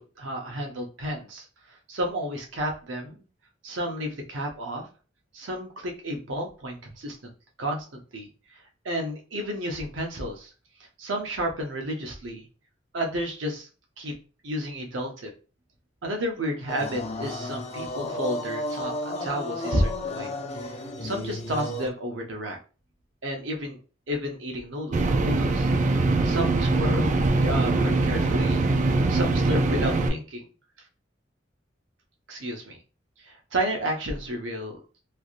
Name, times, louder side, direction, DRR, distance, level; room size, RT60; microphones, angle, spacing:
voice 1, 0.0-1.4 1.9-3.2 3.6-4.9 5.3-7.3 7.6-8.3 8.8-10.5 11.0-12.4 12.9-13.7 14.0-14.1 14.4-15.3 16.0-20.3 21.0-22.6 23.2-23.8 24.1-25.7 26.2-27.2 27.4-28.6 29.1-30.4 32.3-32.8 33.3-34.8, equal, 85° right, 1 dB, 0.8 m, -31 dB
sound 1, 16.7-21.9, left 1 dB, 35° left, 0.5 m, -33 dB
sound 2, 24.9-30.1, right 3 dB, 40° right, 0.3 m, -22 dB
3.2 x 2.5 x 2.5 m, 0.35 s
head